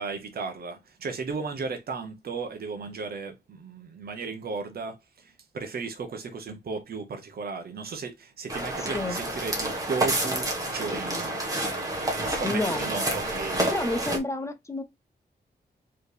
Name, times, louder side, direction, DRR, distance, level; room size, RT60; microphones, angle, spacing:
voice 1, 0.0-11.4 11.9-13.6, right 4 dB, 60° right, 0.9 m, -35 dB
sound 1, 8.5-14.2, right 1 dB, 20° right, 1.3 m, -29 dB
voice 2, 12.4-12.9 13.7-14.8, left 2 dB, 15° left, 0.5 m, -29 dB
4.5 x 3.2 x 3.2 m
wide cardioid pair, 150°, 18 cm